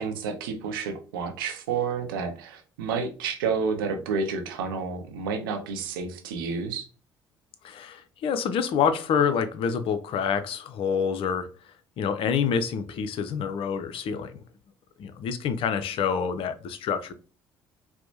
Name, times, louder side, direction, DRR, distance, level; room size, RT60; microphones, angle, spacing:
voice 1, 0.0-6.9, right 5 dB, 75° right, 0.6 m, -30 dB
voice 2, 7.6-11.5 12.0-14.4 15.0-17.1, left 7 dB, 50° left, 0.5 m, -27 dB
4.3 x 2.1 x 2.7 m
figure-of-eight pair, 55°, 12 cm